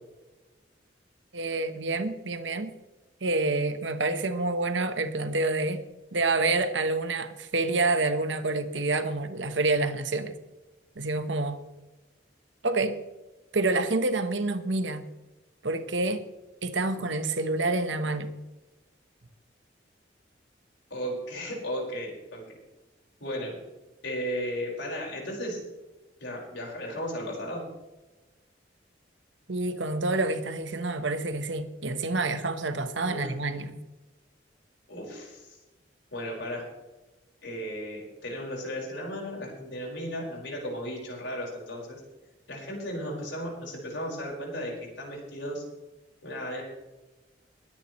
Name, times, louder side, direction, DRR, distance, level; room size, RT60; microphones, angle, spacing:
voice 1, 1.3-2.7 3.2-5.8 6.1-10.3 11.0-11.6 12.6-13.0 13.5-15.1 15.6-16.2 16.6-18.4 29.5-33.8, right 2 dB, 90° right, 1.2 m, -28 dB
voice 2, 20.9-22.4 23.2-23.6 24.0-25.6 26.2-27.6 33.1-33.3 34.9-35.6 36.1-36.7 37.4-42.0 42.5-45.6 46.2-46.6, equal, 80° left, 5.2 m, -35 dB
21.5 x 10.0 x 3.2 m
head